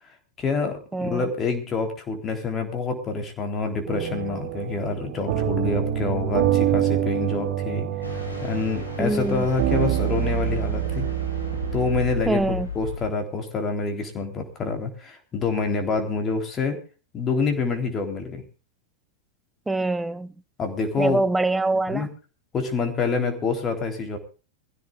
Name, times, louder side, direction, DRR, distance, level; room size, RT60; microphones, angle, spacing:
voice 1, 0.4-7.9 8.4-11.1 11.7-12.4 12.8-16.8 17.1-18.4 20.6-21.2 21.9-22.1 22.5-24.2, left 4 dB, 25° left, 3.6 m, -27 dB
voice 2, 0.9-1.3 9.0-9.5 12.2-12.7 19.7-20.3 21.0-22.1, right 2 dB, 10° right, 0.9 m, -24 dB
sound 1, 3.9-12.2, right 11 dB, 50° right, 3.0 m, -26 dB
sound 2, 8.0-13.1, left 4 dB, 80° left, 5.5 m, -34 dB
23.0 x 15.5 x 2.5 m
figure-of-eight pair, 90°, 0 cm